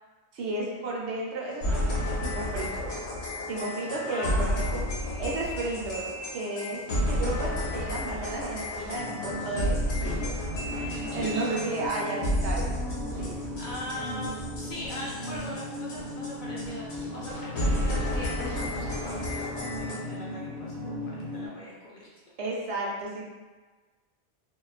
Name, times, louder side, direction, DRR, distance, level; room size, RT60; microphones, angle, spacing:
voice 1, 0.3-1.9 2.2-3.1 3.5-4.8 5.2-6.8 7.1-10.4 10.7-12.7 13.2-13.3 22.4-23.2, right 2 dB, 90° right, -3 dB, 0.9 m, -33 dB
sound 1, 1.6-16.3 16.6-16.7 16.9-17.0 17.2-17.3 17.6-20.0, left 1 dB, 80° left, 0.9 m, -31 dB
voice 2, 4.1-5.4 11.1-11.7 13.1-13.3 13.6-22.1, left 1 dB, 55° left, -6 dB, 0.6 m, -41 dB
sound 2, 6.7-19.8, right 1 dB, 50° right, 0.7 m, -45 dB
sound 3, 8.9-21.5, left 1 dB, 20° left, 0.7 m, -37 dB
2.5 x 2.2 x 2.3 m, 1.3 s
omnidirectional pair, 1.1 m